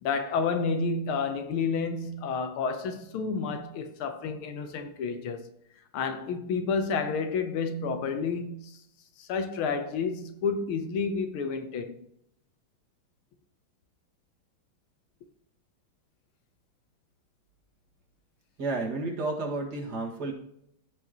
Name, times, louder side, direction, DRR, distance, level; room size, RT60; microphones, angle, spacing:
voice 1, 0.0-5.5 5.9-8.8 9.2-12.0, left 5 dB, 85° left, 1.7 m, -30 dB
voice 2, 18.6-20.3, right 3 dB, 50° right, 2.4 m, -31 dB
15.5 x 5.3 x 3.0 m
omnidirectional pair, 2.3 m